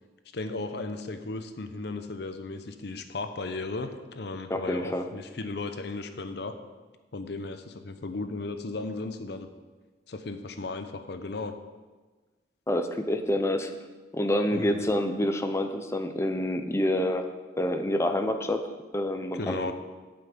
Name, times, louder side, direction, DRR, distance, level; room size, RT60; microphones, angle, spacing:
voice 1, 0.3-6.6 7.1-9.5 10.1-11.5 14.5-14.9 19.3-19.7, left 3 dB, 60° left, 8 dB, 0.7 m, -35 dB
voice 2, 4.5-5.0 12.7-13.7 14.1-17.2 17.6-18.6 18.9-19.7, left 1 dB, 15° left, 6 dB, 0.6 m, -27 dB
8.8 x 5.8 x 7.9 m, 1.3 s
head